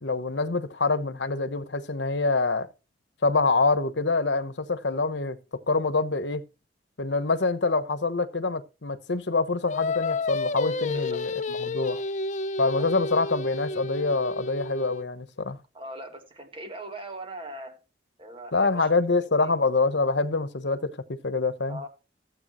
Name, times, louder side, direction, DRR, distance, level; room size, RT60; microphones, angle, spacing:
voice 1, 0.0-2.7 3.2-5.4 5.7-6.4 7.0-12.0 12.6-15.6 18.5-21.8, left 3 dB, 75° left, 1.1 m, -25 dB
Singing, 9.7-15.1, left 3 dB, 40° left, 0.6 m, -31 dB
voice 2, 10.9-11.3 11.8-12.1 12.8-12.9 15.7-17.8 18.2-19.6 21.7-21.9, right 1 dB, 30° right, 2.0 m, -41 dB
15.0 x 8.2 x 3.0 m
head